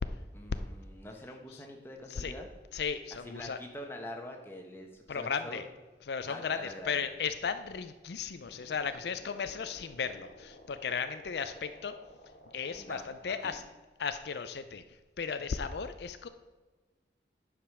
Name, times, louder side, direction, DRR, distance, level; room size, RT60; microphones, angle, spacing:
voice 1, 0.3-2.5 3.2-5.6 6.3-7.1 12.7-13.6, left 1 dB, 15° left, 2 dB, 1.2 m, -45 dB
voice 2, 2.7-3.6 5.1-5.6 6.1-12.0 12.5-13.6 14.0-16.3, left 6 dB, 75° left, 10 dB, 0.5 m, -35 dB
sound 1, 8.4-13.4, left 1 dB, 50° left, 1.6 m, -55 dB
10.0 x 5.0 x 6.1 m, 1.3 s
head